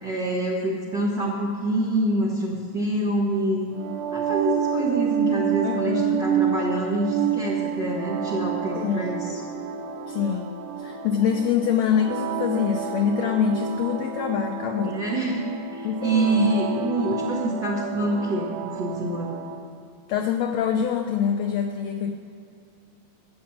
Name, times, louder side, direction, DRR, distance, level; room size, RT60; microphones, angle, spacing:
voice 1, 0.0-3.7 4.1-9.4 14.8-19.4, right 1 dB, 60° right, -3 dB, 1.2 m, -26 dB
sound 1, 3.7-19.7, right 7 dB, 85° right, 2.4 m, -29 dB
voice 2, 5.6-6.2 8.8-9.2 10.1-10.5 10.8-15.0 15.8-16.6 20.1-22.1, left 7 dB, 85° left, 4 dB, 1.5 m, -25 dB
12.0 x 7.4 x 7.5 m, 2.6 s
omnidirectional pair, 3.9 m